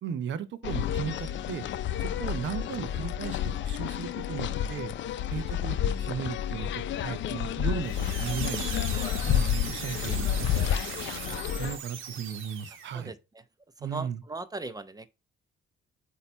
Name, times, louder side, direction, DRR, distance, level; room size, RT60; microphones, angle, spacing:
voice 1, 0.0-1.6 2.0-4.9 5.3-8.7 9.3-10.8 11.3-13.1 13.8-14.2, right 8 dB, 70° right, 0.8 m, -36 dB
sound 1, 0.6-11.8, left 10 dB, 70° left, 0.5 m, -30 dB
sound 2, 7.8-13.0, right 7 dB, 85° right, 1.2 m, -39 dB
voice 2, 13.8-15.1, right 3 dB, 20° right, 0.6 m, -38 dB
8.0 x 2.8 x 4.4 m
cardioid pair, 90°, 20 cm